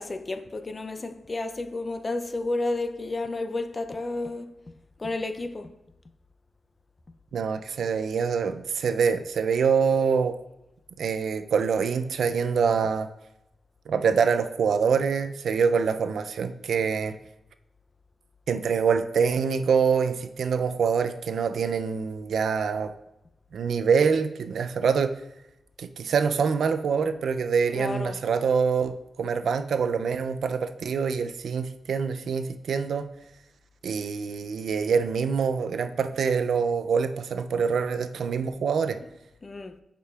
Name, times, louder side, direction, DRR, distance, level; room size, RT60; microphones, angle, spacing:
voice 1, 0.0-4.6 5.0-5.7 27.7-28.2 39.0-39.1 39.4-39.8, left 2 dB, 30° left, 0.4 m, -31 dB
voice 2, 7.3-10.4 11.0-13.1 13.9-17.2 18.5-22.9 23.5-25.1 25.8-33.1 33.8-39.0, right 6 dB, 80° right, 0.3 m, -25 dB
8.7 x 5.1 x 2.3 m
wide cardioid pair, 100°, 0 cm